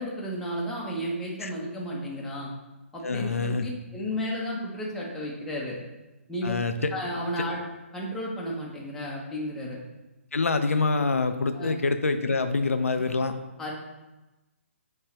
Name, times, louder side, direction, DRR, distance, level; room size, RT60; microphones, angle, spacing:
voice 1, 0.0-2.5 2.9-5.8 6.3-6.5 6.9-7.6 7.9-9.8 11.5-11.7 12.9-13.0 13.6-13.7, equal, 5° left, -4 dB, 1.1 m, -33 dB
voice 2, 3.0-3.7 6.4-6.9 10.3-13.3, left 3 dB, 85° left, 8 dB, 0.6 m, -26 dB
6.7 x 3.2 x 4.4 m, 1.1 s
hypercardioid pair, 145°, 7 cm